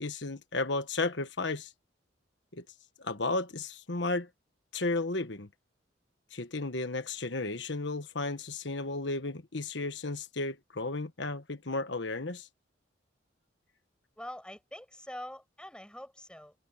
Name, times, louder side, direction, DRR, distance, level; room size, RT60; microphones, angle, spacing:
voice 1, 0.0-1.7 2.5-2.6 3.0-4.3 4.7-5.5 6.3-12.5, left 3 dB, 65° left, 1.4 m, -33 dB
voice 2, 14.2-16.6, left 1 dB, 5° left, 7.0 m, -44 dB
head